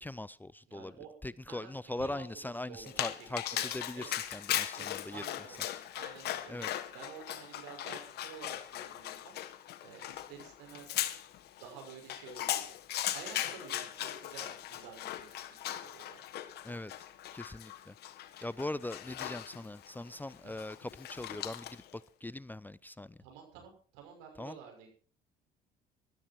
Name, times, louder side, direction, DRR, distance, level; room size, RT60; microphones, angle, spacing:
voice 1, 0.0-1.0 1.2-5.2 6.5-6.7 16.6-16.9 17.3-17.9 18.4-23.2 24.4-24.6, left 1 dB, 10° left, 0.5 m, -41 dB
voice 2, 0.7-1.1 1.5-3.1 3.5-4.1 4.7-5.7 5.9-9.3 9.8-11.0 11.6-12.7 13.1-16.2 20.4-20.5 23.2-24.9, right 7 dB, 75° right, 6.2 m, -51 dB
Dog, 2.9-21.9, left 12 dB, 65° left, 1.5 m, -39 dB
16.5 x 12.5 x 4.6 m
hypercardioid pair, 70°, 19 cm